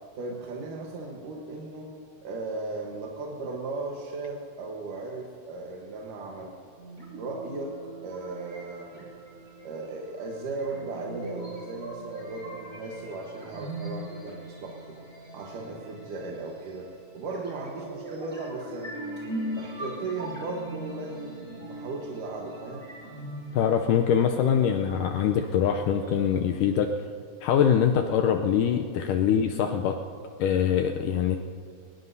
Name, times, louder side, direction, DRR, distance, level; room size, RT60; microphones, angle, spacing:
voice 1, 0.2-1.9 2.2-6.5 7.2-7.7 8.0-9.1 9.6-15.0 15.3-19.2 19.6-22.8, right 3 dB, 70° right, -1 dB, 2.7 m, -36 dB
sound 1, 6.8-26.7, right 1 dB, 20° right, 4.5 m, -41 dB
voice 2, 23.5-26.9 27.4-30.0 30.4-31.4, left 8 dB, 80° left, 5 dB, 2.0 m, -23 dB
22.5 x 21.0 x 2.7 m, 2.2 s
omnidirectional pair, 4.1 m